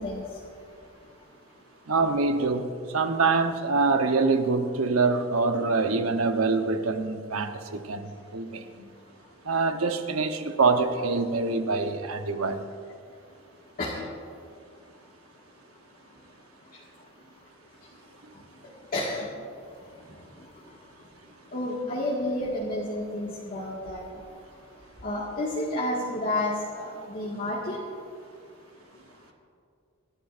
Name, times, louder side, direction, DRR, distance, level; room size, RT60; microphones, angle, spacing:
voice 1, 0.0-1.9 8.0-9.4 13.1-29.3, left 1 dB, 40° left, -6 dB, 1.8 m, -35 dB
voice 2, 1.9-8.0 8.3-8.9 9.4-12.7, right 4 dB, 80° right, 7 dB, 1.0 m, -25 dB
25.5 x 11.5 x 2.5 m, 2.3 s
head